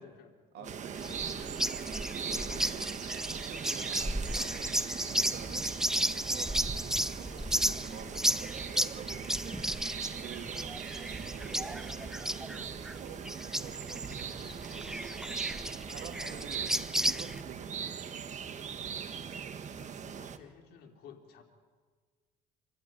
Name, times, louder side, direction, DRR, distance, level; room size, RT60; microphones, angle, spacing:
voice 1, 0.0-0.8 2.4-2.9 5.5-5.7 7.8-8.1 10.3-10.5 16.0-16.5 19.7-21.4, left 6 dB, 80° left, 3 dB, 3.5 m, -54 dB
voice 2, 0.5-1.8 2.9-3.0 3.3-4.7 5.1-9.6 10.1-10.5 11.1-12.7 13.0-15.0 15.8-18.6, right 8 dB, 70° right, 4 dB, 2.9 m, -50 dB
sound 1, 0.6-20.4, right 7 dB, 45° right, 1.6 m, -40 dB
sound 2, 1.0-17.4, right 1 dB, 5° right, 0.8 m, -34 dB
27.0 x 15.5 x 9.5 m, 1.5 s
cardioid pair, 110°, 17 cm